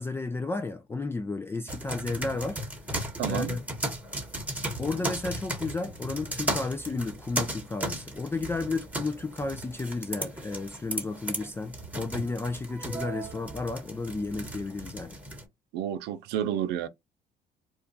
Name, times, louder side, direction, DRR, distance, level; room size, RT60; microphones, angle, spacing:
voice 1, 0.0-2.6 3.3-3.6 4.8-15.2, left 3 dB, 15° left, 0.3 m, -32 dB
sound 1, 1.7-15.4, right 1 dB, 10° right, 1.1 m, -36 dB
voice 2, 3.2-3.6 15.7-16.9, right 10 dB, 90° right, 0.5 m, -30 dB
2.4 x 2.3 x 3.8 m
cardioid pair, 110°, 17 cm